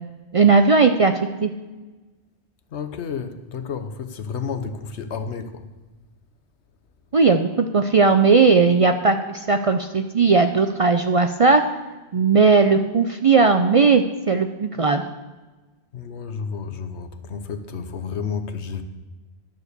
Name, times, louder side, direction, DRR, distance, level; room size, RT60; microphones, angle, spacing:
voice 1, 0.3-1.1 1.4-1.5 7.1-11.6 12.1-15.0, right 4 dB, 50° right, 0.4 m, -17 dB
voice 2, 2.7-5.7 15.9-18.8, left 6 dB, 85° left, 1.2 m, -31 dB
11.0 x 7.2 x 6.7 m
omnidirectional pair, 1.1 m